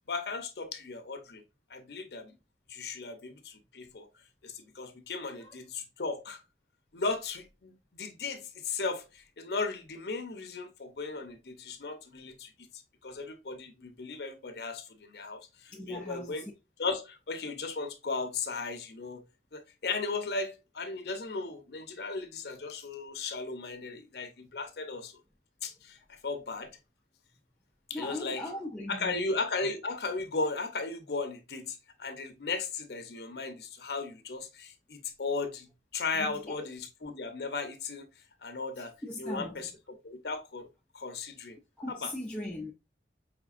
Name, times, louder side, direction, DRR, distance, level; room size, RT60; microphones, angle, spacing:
voice 1, 0.1-1.4 1.7-2.3 2.7-4.1 4.4-6.4 6.9-12.5 13.0-16.5 16.8-19.2 19.5-25.1 25.6-26.7 27.9-28.5 28.9-38.1 38.4-38.9 39.2-40.7 40.9-41.6 41.9-42.1, left 4 dB, 65° left, 0.6 m, -36 dB
voice 2, 15.7-16.5 27.9-29.2 36.1-36.7 38.8-39.7 41.8-42.7, left 1 dB, 5° left, 0.4 m, -39 dB
4.9 x 3.3 x 2.4 m
head